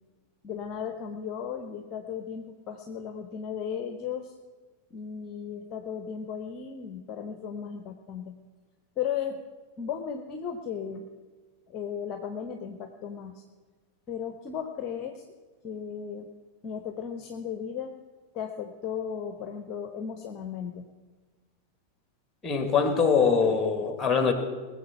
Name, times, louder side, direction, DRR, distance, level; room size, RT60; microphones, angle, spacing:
voice 1, 0.4-4.3 4.9-8.3 9.0-9.4 9.8-11.1 11.7-13.4 14.1-15.2 15.6-16.3 16.6-17.9 18.3-20.8, left 7 dB, 35° left, 7 dB, 1.0 m, -35 dB
voice 2, 22.4-24.3, left 5 dB, 15° left, 7 dB, 2.0 m, -23 dB
20.0 x 7.5 x 5.9 m, 1.4 s
figure-of-eight pair, 90°, 0 cm